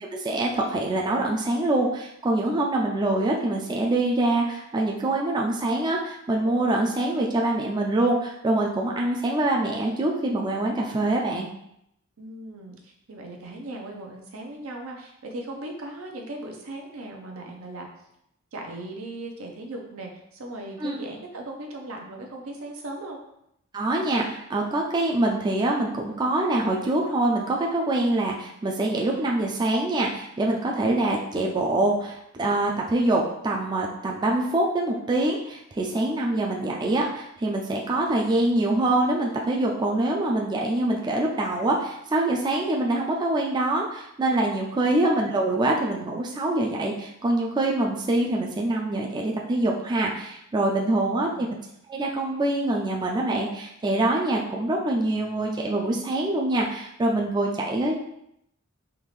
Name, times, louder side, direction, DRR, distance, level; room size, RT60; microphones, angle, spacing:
voice 1, 0.0-11.5 20.8-21.0 23.7-51.5 51.9-58.0, right 2 dB, 20° right, -1 dB, 0.3 m, -25 dB
voice 2, 12.2-17.9 18.5-23.2 51.0-51.5, right 2 dB, 80° right, 1 dB, 0.7 m, -38 dB
3.6 x 2.4 x 3.1 m, 0.77 s
head